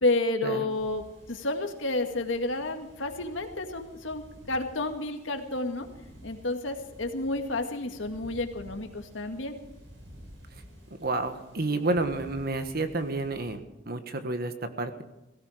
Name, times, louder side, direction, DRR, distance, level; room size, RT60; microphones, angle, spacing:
voice 1, 0.0-5.9 6.2-9.6, left 2 dB, 80° left, 5 dB, 1.9 m, -30 dB
sound 1, 0.7-13.6, equal, 70° right, 5.9 m, -51 dB
voice 2, 11.0-13.6 13.9-15.0, right 2 dB, 55° right, 8 dB, 1.5 m, -30 dB
17.5 x 16.5 x 5.0 m, 0.98 s
head